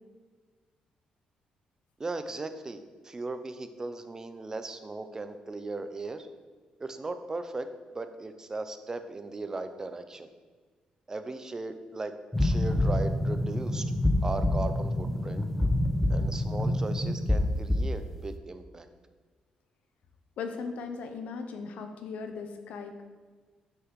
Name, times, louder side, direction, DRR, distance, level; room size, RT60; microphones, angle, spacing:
voice 1, 2.0-6.3 6.8-7.7 7.9-10.3 11.1-12.1 12.4-13.8 14.2-15.4 16.1-18.9, right 3 dB, 25° right, 9 dB, 0.6 m, -37 dB
sound 1, 12.3-18.0, left 1 dB, 10° left, 0.9 m, -27 dB
voice 2, 20.4-23.0, left 5 dB, 80° left, 6 dB, 0.9 m, -38 dB
6.3 x 5.8 x 6.3 m, 1.4 s
cardioid pair, 105°, 2 cm